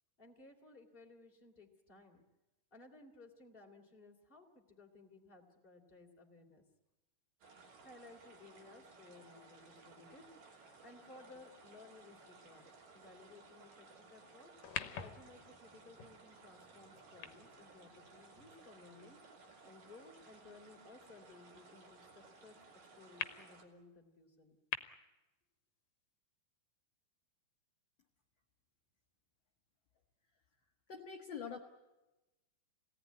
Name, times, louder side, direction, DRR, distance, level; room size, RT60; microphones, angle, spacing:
voice 1, 0.2-2.2 2.7-6.6 7.8-14.5 15.0-19.2 19.6-22.6 23.0-24.6, left 3 dB, 15° left, 2 dB, 2.9 m, -59 dB
sound 1, 7.4-23.6, right 4 dB, 70° right, 4.7 m, -59 dB
sound 2, 14.6-19.1 19.7-19.8 23.2-23.3 24.7-24.8, left 10 dB, 75° left, 2.6 m, -46 dB
voice 2, 30.9-31.6, left 6 dB, 50° left, 1 dB, 1.7 m, -44 dB
26.5 x 18.0 x 9.5 m, 1.1 s
omnidirectional pair, 3.9 m